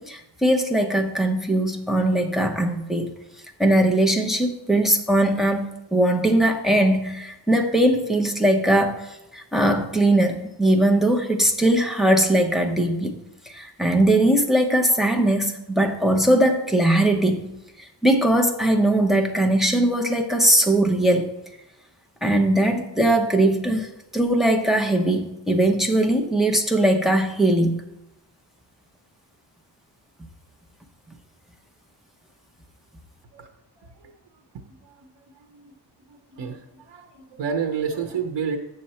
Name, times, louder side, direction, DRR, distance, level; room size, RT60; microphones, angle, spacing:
voice 1, 0.0-3.1 3.6-13.1 13.5-17.5 18.0-21.2 22.2-27.8, right 1 dB, ahead, 3 dB, 0.7 m, -20 dB
voice 2, 36.1-38.6, right 6 dB, 85° right, 5 dB, 0.9 m, -30 dB
7.1 x 6.6 x 4.3 m, 0.90 s
wide cardioid pair, 170°, 43 cm